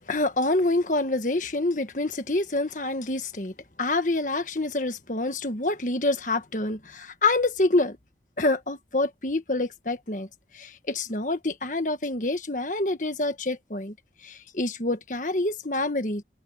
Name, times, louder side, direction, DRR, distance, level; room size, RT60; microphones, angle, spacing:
voice 1, 0.0-8.0 8.4-10.3 10.5-13.9 14.2-16.2, left 2 dB, 45° left, 1.6 m, -27 dB
open air
head